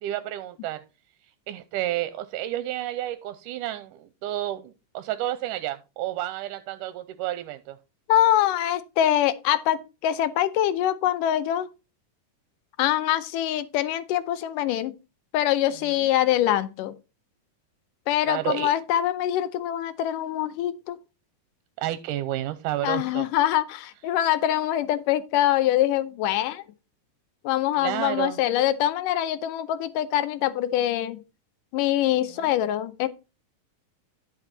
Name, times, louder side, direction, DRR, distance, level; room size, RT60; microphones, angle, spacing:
voice 1, 0.0-0.8 1.5-7.8 18.2-18.7 21.8-23.3 27.8-28.4 32.4-32.5, right 14 dB, 80° right, 2.1 m, -31 dB
voice 2, 8.1-11.7 12.8-14.9 15.3-16.9 18.1-21.0 22.8-26.6 27.4-31.2 31.7-33.1, left 12 dB, 80° left, 2.3 m, -24 dB
11.0 x 6.1 x 4.0 m
omnidirectional pair, 3.8 m